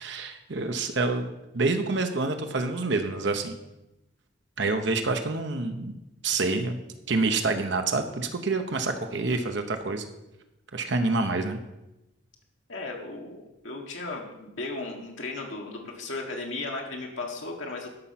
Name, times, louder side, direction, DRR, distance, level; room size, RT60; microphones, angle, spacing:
voice 1, 0.0-3.5 4.6-5.9 6.2-6.8 7.1-10.0 10.7-11.6, right 3 dB, 60° right, 6 dB, 0.8 m, -27 dB
voice 2, 12.7-17.9, left 3 dB, 70° left, 0 dB, 1.6 m, -36 dB
12.5 x 5.7 x 5.8 m, 0.93 s
head